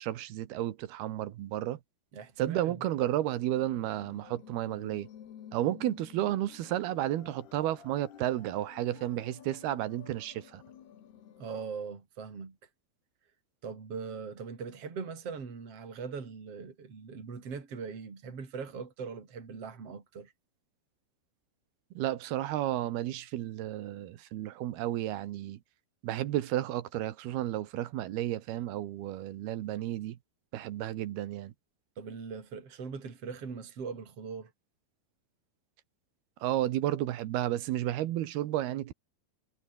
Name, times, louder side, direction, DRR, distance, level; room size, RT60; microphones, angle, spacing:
voice 1, 0.0-1.8 2.4-5.1 5.5-10.6 21.9-25.6 26.0-30.2 30.5-31.5 36.4-38.9, right 13 dB, 80° right, 3.3 m, -32 dB
voice 2, 2.1-2.7 11.4-12.6 13.6-20.3 32.0-34.5, right 5 dB, 40° right, 4.8 m, -41 dB
sound 1, 3.5-11.5, left 9 dB, 90° left, 4.5 m, -52 dB
omnidirectional pair, 4.5 m